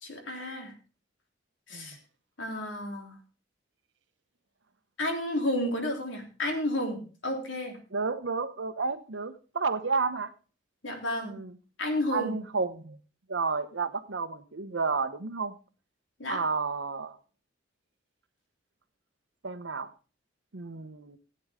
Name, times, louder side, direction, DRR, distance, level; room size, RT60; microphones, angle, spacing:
voice 1, 0.0-0.7 1.7-2.0 2.4-3.2 5.0-7.8 10.8-11.4 11.8-12.3 16.2-16.4, left 1 dB, 80° left, 2 dB, 3.2 m, -31 dB
voice 2, 7.9-10.3 11.2-11.6 12.1-13.0 13.3-15.5 16.3-17.2 19.4-19.9 20.5-21.2, right 4 dB, 75° right, 12 dB, 0.9 m, -31 dB
15.0 x 8.7 x 3.6 m, 0.35 s
head